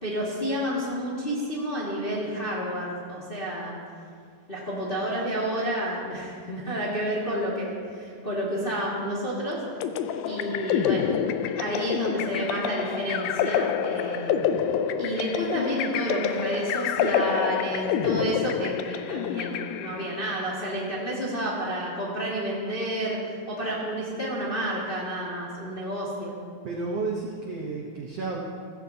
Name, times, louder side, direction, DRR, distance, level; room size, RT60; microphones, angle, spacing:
voice 1, 0.0-3.8 4.5-9.6 10.2-11.1 11.5-14.4 14.9-26.3, equal, 25° left, -6 dB, 1.3 m, -30 dB
sound 1, 9.8-20.2, left 8 dB, 85° left, 1.7 m, -27 dB
voice 2, 26.6-28.4, right 3 dB, 70° right, -1 dB, 1.5 m, -31 dB
15.5 x 14.0 x 2.8 m, 2.2 s
omnidirectional pair, 4.1 m